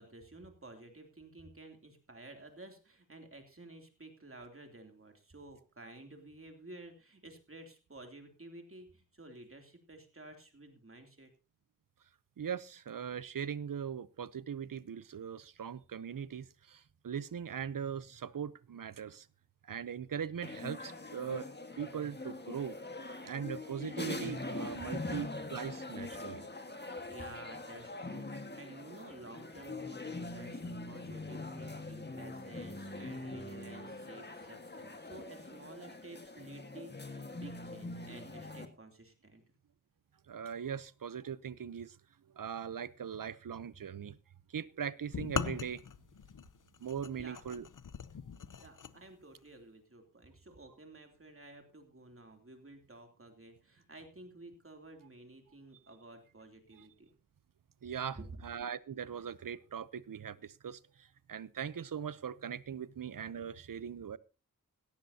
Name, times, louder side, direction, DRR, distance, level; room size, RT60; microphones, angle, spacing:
voice 1, 0.0-11.3 24.8-24.9 27.1-39.4 47.1-47.4 48.6-57.1 58.1-58.3, right 2 dB, 40° right, 4 dB, 2.9 m, -52 dB
voice 2, 12.4-19.3 19.7-21.5 21.8-22.8 23.2-26.4 40.3-42.0 42.3-44.2 44.5-45.8 46.8-47.7 56.7-56.8 57.8-58.2 58.4-64.2, right 8 dB, 80° right, 17 dB, 0.7 m, -40 dB
sound 1, 20.4-38.7, left 2 dB, 30° left, 1.7 m, -43 dB
sound 2, 45.1-48.9, left 7 dB, 70° left, 0.8 m, -40 dB
17.5 x 14.0 x 2.8 m, 0.32 s
wide cardioid pair, 75°, 33 cm